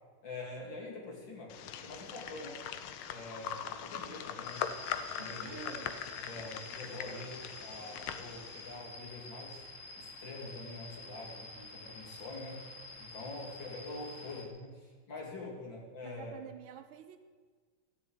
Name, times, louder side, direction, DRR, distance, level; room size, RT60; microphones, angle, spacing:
voice 1, 0.2-2.6 3.1-4.7 5.2-5.8 6.2-9.6 10.0-12.6 13.0-16.4, left 2 dB, 60° left, -1 dB, 3.3 m, -45 dB
sound 1, 1.5-8.8, left 9 dB, 75° left, 1.5 m, -41 dB
sound 2, 4.4-14.5, left 2 dB, 40° left, 1.5 m, -49 dB
voice 2, 5.0-6.0 16.0-17.2, right 9 dB, 75° right, 9 dB, 1.5 m, -50 dB
14.0 x 6.9 x 8.8 m, 1.5 s
omnidirectional pair, 2.4 m